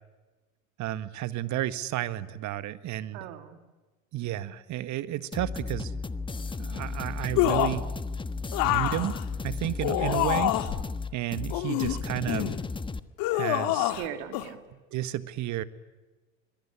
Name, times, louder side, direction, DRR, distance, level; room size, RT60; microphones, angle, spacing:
voice 1, 0.8-3.2 4.1-5.9 6.6-7.9 8.6-9.1 9.4-10.5 11.1-12.5 13.3-13.9 14.9-15.6, right 14 dB, 45° right, 14 dB, 1.7 m, -32 dB
voice 2, 3.1-3.6 9.8-10.3 13.7-14.6, right 10 dB, 60° right, 7 dB, 3.3 m, -40 dB
sound 1, 5.3-13.0, left 4 dB, 10° left, 1.3 m, -34 dB
sound 2, 7.4-7.9 8.5-10.8 11.5-12.6 13.2-14.1 14.3-14.5, left 15 dB, 55° left, 2.1 m, -27 dB
26.0 x 22.0 x 9.8 m, 1.2 s
hypercardioid pair, 95°, 41 cm